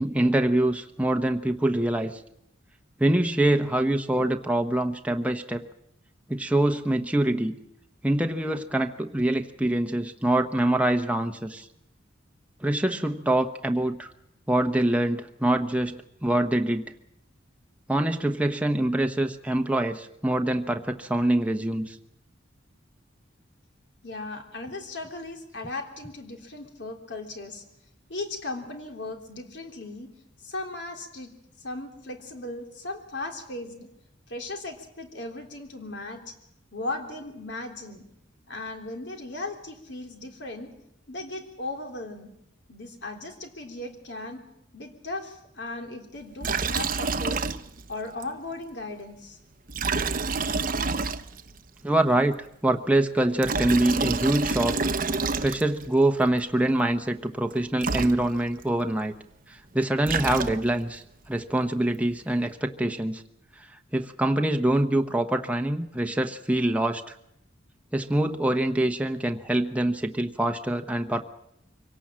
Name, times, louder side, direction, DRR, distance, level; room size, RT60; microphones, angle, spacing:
voice 1, 0.0-2.2 3.0-5.6 6.3-7.5 8.0-11.7 12.6-14.1 14.5-16.9 17.9-22.0 51.8-52.3 52.6-54.8 55.4-59.1 59.5-63.2 63.6-63.7 63.9-67.1 67.9-71.2, right 1 dB, 5° right, 4 dB, 1.0 m, -25 dB
voice 2, 24.0-27.6 28.1-30.1 30.4-31.3 31.6-33.9 34.3-36.4 36.7-38.0 38.5-40.7 41.1-42.3 42.7-44.4 44.7-47.4 47.9-49.4, left 2 dB, 65° left, 4 dB, 3.5 m, -37 dB
Liquid, 46.4-47.9 48.2-48.3 49.7-51.6 53.2-55.9 57.5-57.6 57.8-58.6 59.8-60.9, right 4 dB, 45° right, 0.9 m, -28 dB
24.5 x 17.5 x 7.5 m, 0.80 s
head